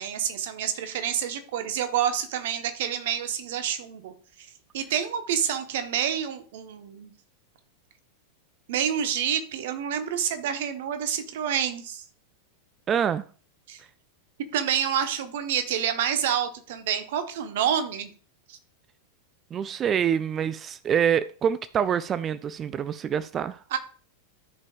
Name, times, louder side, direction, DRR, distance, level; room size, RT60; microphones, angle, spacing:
voice 1, 0.0-4.1 4.7-7.1 8.7-12.0 13.7-13.8 14.5-18.1 18.5-18.6 23.7-23.8, right 9 dB, 55° right, 1.0 m, -28 dB
voice 2, 12.9-13.2 19.5-23.6, right 8 dB, 25° right, 0.3 m, -26 dB
14.0 x 5.3 x 2.4 m
figure-of-eight pair, 90°, 0 cm